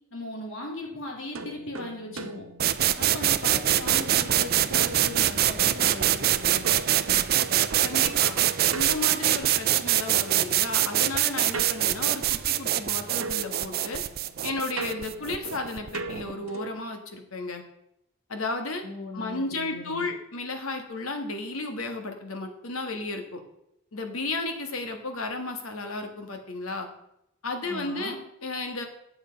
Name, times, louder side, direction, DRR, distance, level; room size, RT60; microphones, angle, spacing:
voice 1, 0.1-2.5 3.0-6.7 18.8-20.1 27.6-28.2, left 2 dB, 65° left, 0 dB, 2.6 m, -38 dB
sound 1, 1.4-3.4 3.9-5.7 6.6-9.9 11.5-12.9 13.2-16.9, right 3 dB, 80° right, 0.8 m, -40 dB
sound 2, 2.6-16.3, right 12 dB, 45° right, 0.4 m, -24 dB
sound 3, 4.0-13.3, left 1 dB, 5° right, 0.7 m, -49 dB
voice 2, 7.8-8.4 8.7-14.0 14.4-17.6 18.3-18.8 19.1-23.4 23.9-26.9 27.4-28.1 28.4-28.8, left 2 dB, 85° left, 5 dB, 1.6 m, -33 dB
8.8 x 6.9 x 5.2 m, 0.78 s
head